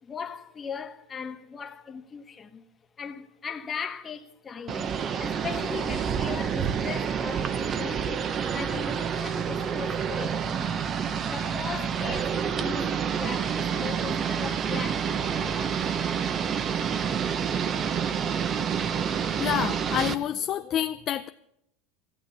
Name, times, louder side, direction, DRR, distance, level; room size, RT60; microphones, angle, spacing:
voice 1, 0.0-2.6 3.0-4.9 5.2-8.2 8.5-10.7 11.3-16.1, left 6 dB, 25° left, 1.3 m, -39 dB
sound 1, 4.7-20.1, right 7 dB, 35° right, 0.9 m, -28 dB
voice 2, 19.4-21.3, left 11 dB, 40° left, 0.5 m, -28 dB
16.0 x 7.7 x 9.8 m
supercardioid pair, 120°, 0 cm